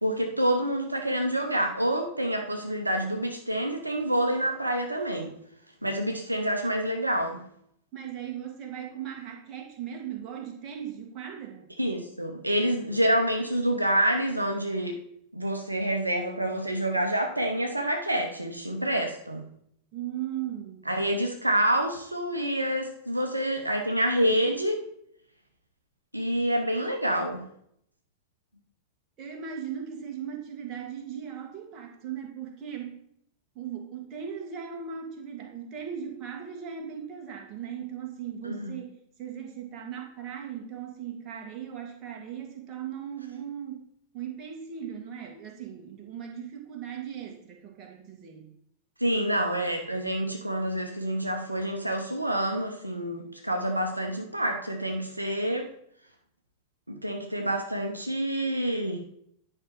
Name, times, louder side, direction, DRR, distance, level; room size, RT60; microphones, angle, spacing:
voice 1, 0.0-5.3 5.8-7.4 11.8-15.0 15.3-19.4 20.9-24.8 26.1-27.4 38.4-38.7 49.0-55.7 56.9-59.0, right 1 dB, 85° right, 3 dB, 0.8 m, -27 dB
voice 2, 7.9-11.7 19.9-20.9 29.2-33.0 33.5-43.8 44.1-48.5, right 8 dB, 35° right, 2 dB, 2.0 m, -38 dB
9.7 x 5.3 x 4.7 m, 0.70 s
figure-of-eight pair, 90°, 0 cm